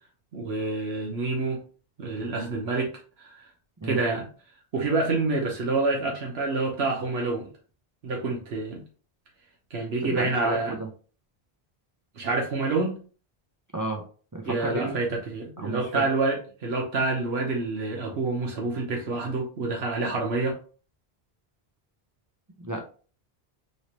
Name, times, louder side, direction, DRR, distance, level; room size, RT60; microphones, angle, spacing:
voice 1, 0.3-1.6 2.0-2.9 3.2-3.5 3.8-4.3 4.7-7.5 8.0-8.8 9.7-10.8 12.1-13.0 14.5-20.6, right 3 dB, 80° right, 0 dB, 1.1 m, -27 dB
voice 2, 10.0-10.9 13.7-14.1 14.3-15.0 15.6-16.0 22.6-22.8, right 1 dB, 35° right, 0 dB, 0.3 m, -31 dB
3.2 x 2.9 x 2.8 m, 0.39 s
omnidirectional pair, 1.1 m